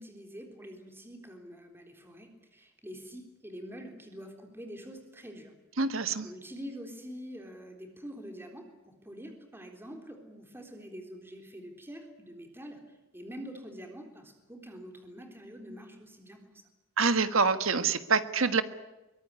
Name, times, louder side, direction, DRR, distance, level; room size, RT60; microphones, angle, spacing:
voice 1, 0.0-5.5 6.2-12.8 13.1-16.4, equal, 10° right, 4 dB, 3.7 m, -45 dB
voice 2, 5.8-6.3 17.0-18.6, right 4 dB, 65° right, 11 dB, 1.5 m, -26 dB
23.5 x 20.0 x 9.8 m, 1.0 s
head